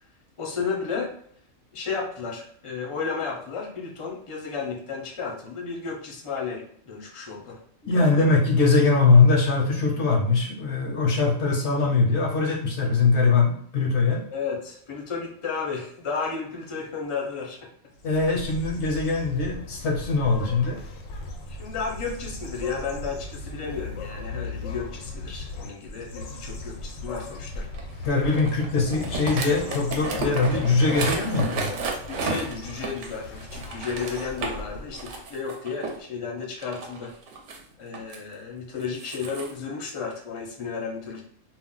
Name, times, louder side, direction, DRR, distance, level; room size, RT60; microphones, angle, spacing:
voice 1, 0.4-1.2 1.7-7.6 8.1-8.3 14.3-17.6 21.5-27.7 32.1-37.1 37.8-41.2, left 5 dB, 35° left, -2 dB, 0.5 m, -33 dB
voice 2, 7.8-14.3 18.0-20.8 28.0-31.7, left 4 dB, 65° left, -1 dB, 0.8 m, -21 dB
sound 1, 17.9-35.2, left 3 dB, 85° left, 1.0 m, -38 dB
sound 2, 27.7-34.6 34.9-36.0 36.6-38.2 38.8-39.5, right 3 dB, 70° right, 0.9 m, -32 dB
2.4 x 2.1 x 3.7 m, 0.64 s
omnidirectional pair, 1.3 m